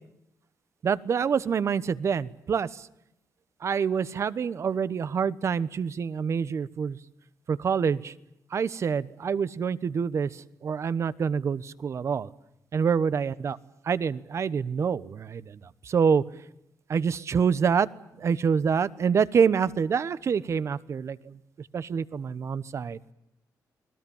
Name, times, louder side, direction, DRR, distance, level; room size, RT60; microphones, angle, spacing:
voice 1, 0.8-2.9 3.6-7.0 7.5-8.1 8.5-12.3 12.7-13.6 13.8-16.2 16.9-17.9 18.2-23.1, right 6 dB, 45° right, 17 dB, 1.1 m, -26 dB
29.5 x 21.0 x 7.2 m, 0.83 s
cardioid pair, 120°, 6 cm